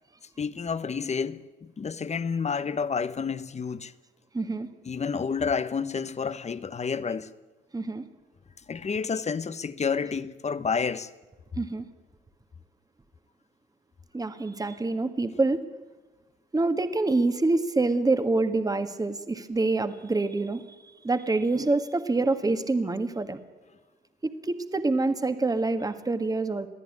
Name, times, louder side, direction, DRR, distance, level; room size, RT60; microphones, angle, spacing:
voice 1, 0.4-3.9 4.8-7.3 8.7-11.1, left 5 dB, 35° left, 1.1 m, -30 dB
voice 2, 4.3-4.7 7.7-8.0 11.5-11.9 14.1-15.6 16.5-20.6 21.0-23.4 24.2-26.7, right 3 dB, 20° right, 1.6 m, -26 dB
22.0 x 14.5 x 9.7 m
cardioid pair, 90°, 20 cm